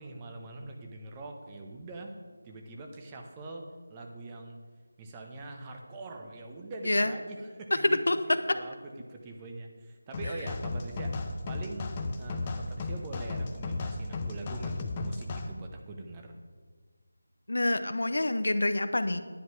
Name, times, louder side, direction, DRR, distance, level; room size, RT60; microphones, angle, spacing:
voice 1, 0.0-2.2 2.4-4.6 5.0-11.2 11.5-11.9 12.2-16.4, right 2 dB, 15° right, 2 dB, 0.9 m, -43 dB
voice 2, 7.8-8.2 17.5-19.2, left 2 dB, 75° left, 10 dB, 0.8 m, -26 dB
sound 1, 10.1-15.5, left 3 dB, 25° left, 0.8 m, -35 dB
10.0 x 9.2 x 4.7 m, 1.5 s
figure-of-eight pair, 165°, 0 cm